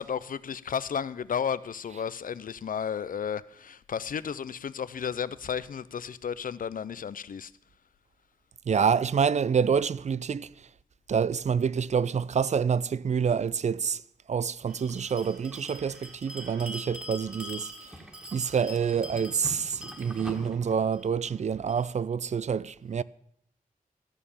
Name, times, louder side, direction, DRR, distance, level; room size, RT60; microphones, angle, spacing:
voice 1, 0.0-7.5, left 7 dB, 70° left, 0.5 m, -33 dB
voice 2, 8.7-10.7 11.1-14.0 14.3-17.9 18.3-23.0, right 6 dB, 55° right, 0.4 m, -27 dB
Bell, 14.7-21.9, equal, 5° right, 1.8 m, -43 dB
14.0 x 6.6 x 7.0 m
cardioid pair, 60°, 15 cm